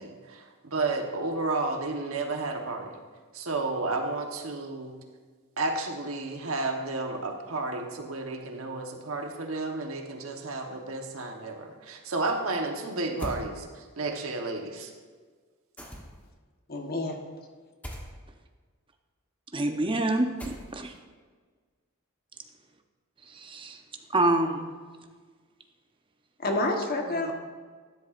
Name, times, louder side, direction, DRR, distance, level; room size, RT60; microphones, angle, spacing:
voice 1, 0.0-3.0 3.3-5.0 5.6-14.9, right 3 dB, 80° right, 3 dB, 1.1 m, -32 dB
sound 1, 13.2-13.5 15.8-16.3 17.8-18.1 20.4-20.9, equal, 5° left, 1.1 m, -38 dB
voice 2, 16.7-17.2 26.4-27.3, left 2 dB, 45° left, 2 dB, 1.2 m, -28 dB
voice 3, 19.5-20.9 23.3-23.8 24.1-24.7 27.1-27.3, right 2 dB, 25° right, 5 dB, 0.7 m, -27 dB
12.5 x 10.0 x 2.5 m, 1.5 s
head